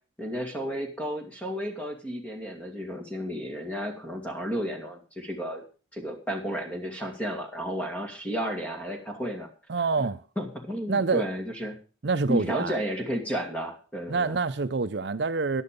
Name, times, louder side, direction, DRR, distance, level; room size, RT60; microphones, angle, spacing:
voice 1, 0.2-5.6 5.9-9.5 10.0-10.1 10.4-11.7 12.3-14.4, equal, 5° left, 2.4 m, -32 dB
voice 2, 9.7-10.2 10.9-11.3 12.0-12.8 14.1-15.6, right 4 dB, 60° right, 0.6 m, -26 dB
11.0 x 10.5 x 5.3 m
head